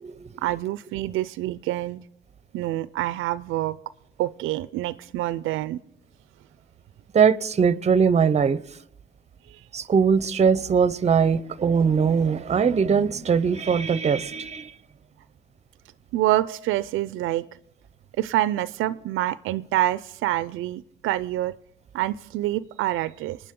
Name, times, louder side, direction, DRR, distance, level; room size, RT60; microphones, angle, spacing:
voice 1, 0.4-2.0 2.5-3.8 4.2-5.8 9.5-9.6 16.1-17.5 18.2-21.5 21.9-23.4, right 14 dB, 85° right, 0.4 m, -26 dB
voice 2, 7.1-8.6 9.7-14.7, right 6 dB, 35° right, 0.6 m, -21 dB
26.0 x 9.8 x 3.7 m
cardioid pair, 90°, 20 cm